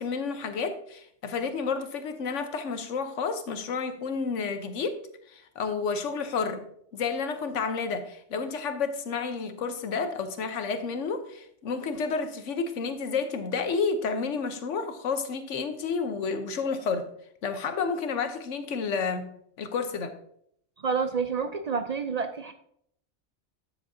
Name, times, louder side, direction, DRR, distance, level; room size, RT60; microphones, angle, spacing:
voice 1, 0.0-5.0 5.3-6.6 6.9-17.1 17.4-19.3 19.6-20.1, left 5 dB, 85° left, 8 dB, 1.2 m, -30 dB
voice 2, 20.8-22.5, right 5 dB, 50° right, 8 dB, 0.5 m, -29 dB
9.5 x 7.6 x 2.7 m, 0.68 s
omnidirectional pair, 1.2 m